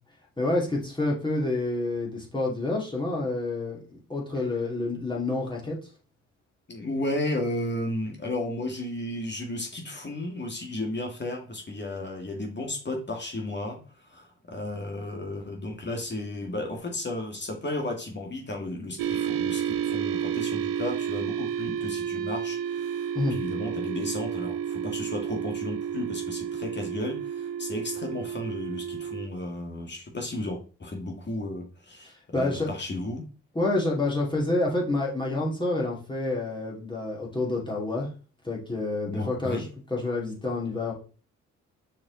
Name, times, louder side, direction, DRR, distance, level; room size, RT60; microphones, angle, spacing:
voice 1, 0.4-5.8 23.1-23.4 32.0-32.7 33.5-38.1 38.4-40.9, left 2 dB, 15° left, -3 dB, 2.5 m, -28 dB
voice 2, 6.7-33.2 39.1-39.6, left 1 dB, 35° left, 1 dB, 2.0 m, -34 dB
sound 1, 19.0-29.3, right 9 dB, 85° right, 0.7 m, -31 dB
6.4 x 4.3 x 3.9 m, 0.37 s
supercardioid pair, 55°, 32 cm